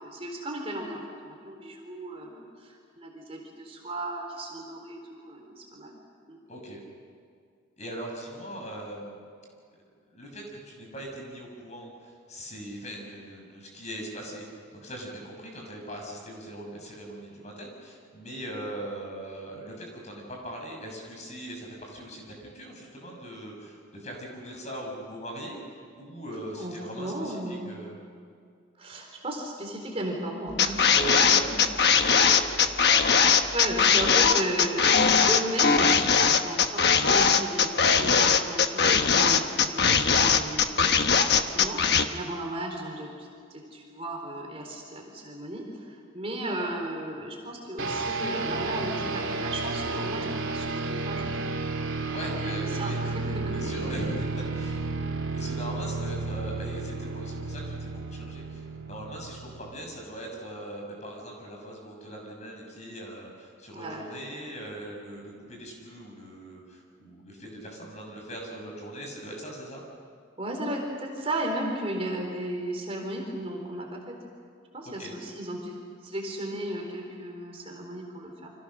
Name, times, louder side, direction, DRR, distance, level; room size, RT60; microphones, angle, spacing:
voice 1, 0.0-5.9 6.3-6.4 26.5-27.7 28.8-30.8 31.3-31.6 33.1-51.3 52.2-53.8 63.7-64.0 70.4-74.1 74.7-75.8 76.0-78.5, right 1 dB, 30° right, 1 dB, 4.0 m, -35 dB
voice 2, 6.5-6.8 7.8-9.2 10.1-27.9 30.8-33.4 52.1-53.0 53.5-54.3 54.5-54.8 55.3-69.8 75.0-75.1, right 1 dB, 35° left, 0 dB, 6.4 m, -40 dB
sound 1, 30.6-42.1, left 6 dB, 55° left, 1.3 m, -20 dB
sound 2, 47.8-60.0, right 3 dB, 85° right, 2.7 m, -32 dB
29.5 x 26.0 x 6.5 m, 2.2 s
head